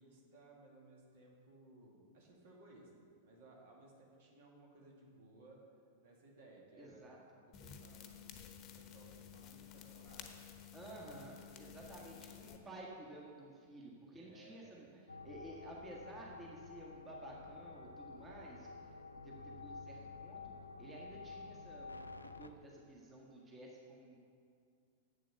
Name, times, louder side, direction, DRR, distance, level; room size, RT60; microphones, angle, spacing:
voice 1, 0.0-5.6 6.0-7.0 7.6-10.4 10.7-11.0 14.2-14.9, right 2 dB, 55° right, -1 dB, 2.1 m, -61 dB
voice 2, 6.8-7.2 10.7-24.2, right 1 dB, 20° right, -3 dB, 1.7 m, -53 dB
sound 1, 7.5-12.6, left 8 dB, 35° left, 1.0 m, -53 dB
sound 2, 15.1-22.5, left 3 dB, 90° left, 0.5 m, -51 dB
8.0 x 7.5 x 6.7 m, 2.2 s
figure-of-eight pair, 95°, 0 cm